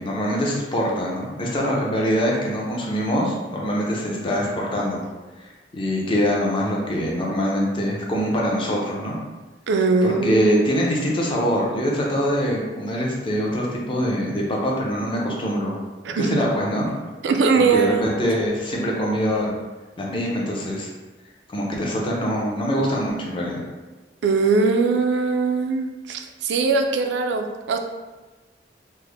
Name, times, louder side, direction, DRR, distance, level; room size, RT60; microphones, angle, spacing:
voice 1, 0.0-5.0 5.4-9.2 10.0-15.8 16.2-16.9 17.7-19.5 20.0-20.9 21.5-23.6, equal, 30° left, -3 dB, 0.6 m, -24 dB
voice 2, 9.7-10.6 16.0-16.5 17.2-18.0 24.2-27.8, right 4 dB, 75° right, 5 dB, 0.3 m, -21 dB
3.2 x 2.0 x 3.4 m, 1.2 s
head